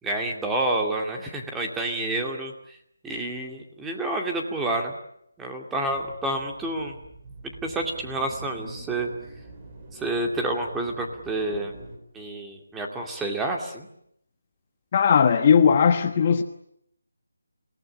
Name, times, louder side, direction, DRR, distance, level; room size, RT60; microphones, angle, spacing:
voice 1, 0.0-2.8 3.0-4.9 5.4-6.9 7.6-9.1 9.9-11.7 12.1-13.9, right 2 dB, 5° right, 2.4 m, -29 dB
sound 1, 5.9-12.0, right 2 dB, 25° right, 4.8 m, -45 dB
voice 2, 14.9-16.4, left 7 dB, 30° left, 1.2 m, -18 dB
28.0 x 18.5 x 9.9 m
figure-of-eight pair, 170°, 0 cm